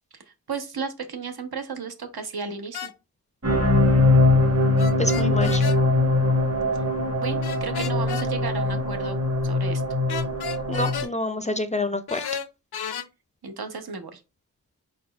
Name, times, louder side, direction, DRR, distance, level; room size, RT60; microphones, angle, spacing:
voice 1, 0.5-2.9 7.2-9.2 9.4-9.8 13.4-14.2, right 5 dB, 75° right, 0.8 m, -34 dB
sound 1, 2.7-2.9 4.8-5.8 7.4-8.3 10.1-11.1 12.1-13.1, left 8 dB, 80° left, 0.5 m, -33 dB
sound 2, 3.4-11.0, left 2 dB, 40° right, 1.2 m, -21 dB
voice 2, 5.0-5.6 10.7-12.2, left 2 dB, 20° left, 0.4 m, -27 dB
4.2 x 4.0 x 2.2 m
wide cardioid pair, 60°, 38 cm